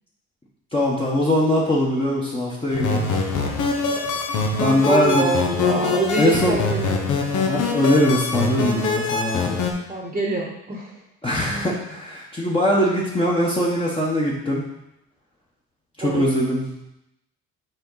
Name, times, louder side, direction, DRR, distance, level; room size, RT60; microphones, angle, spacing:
voice 1, 0.7-3.0 4.6-5.3 6.2-6.6 7.5-9.6 11.2-14.6 16.0-16.7, left 1 dB, 20° left, -5 dB, 1.2 m, -21 dB
sound 1, 2.7-9.7, left 4 dB, 80° left, 1.0 m, -23 dB
voice 2, 4.9-7.0 9.9-10.9 16.0-16.3, right 3 dB, 20° right, 0 dB, 1.1 m, -25 dB
6.7 x 4.5 x 3.9 m, 0.86 s
cardioid pair, 90°, 30 cm